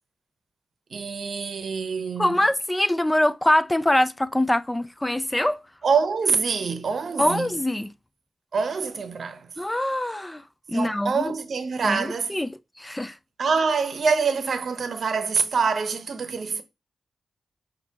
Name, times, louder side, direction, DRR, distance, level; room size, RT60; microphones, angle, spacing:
voice 1, 0.9-2.4 5.8-7.5 8.5-9.5 10.7-12.4 13.4-16.6, right 5 dB, 70° right, 0.8 m, -25 dB
voice 2, 2.2-5.6 7.2-7.9 9.6-11.3 11.8-12.5 12.8-13.2, left 1 dB, 15° left, 0.4 m, -24 dB
5.8 x 2.7 x 2.8 m
cardioid pair, 60°, 0 cm